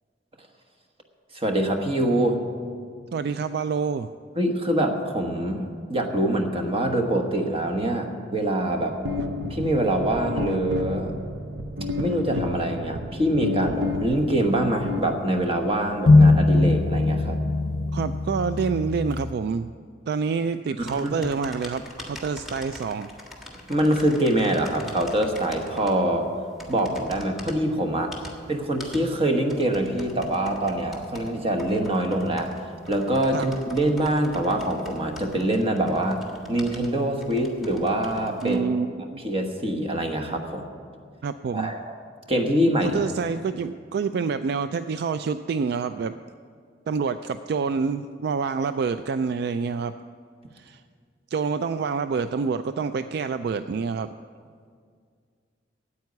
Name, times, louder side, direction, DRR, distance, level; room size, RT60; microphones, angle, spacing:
voice 1, 1.3-2.4 4.4-9.0 9.5-11.1 12.0-17.4 20.8-21.1 23.7-26.3 26.7-28.1 28.5-32.5 32.9-36.2 36.5-38.6 39.2-40.6 41.5-41.8 42.3-43.0, right 1 dB, 30° right, 4 dB, 1.2 m, -24 dB
voice 2, 3.1-4.1 17.9-19.7 20.1-23.1 33.3-33.5 38.4-39.2 41.2-41.7 42.9-46.2 46.9-49.9 50.5-50.8 51.3-54.1, right 5 dB, 60° right, 11 dB, 0.3 m, -27 dB
sound 1, 9.1-15.7, left 2 dB, 85° right, 0.7 m, -31 dB
sound 2, 16.1-19.3, left 2 dB, 50° left, 0.6 m, -20 dB
sound 3, 20.8-38.6, left 1 dB, ahead, 1.5 m, -44 dB
9.2 x 8.6 x 9.5 m, 2.1 s
head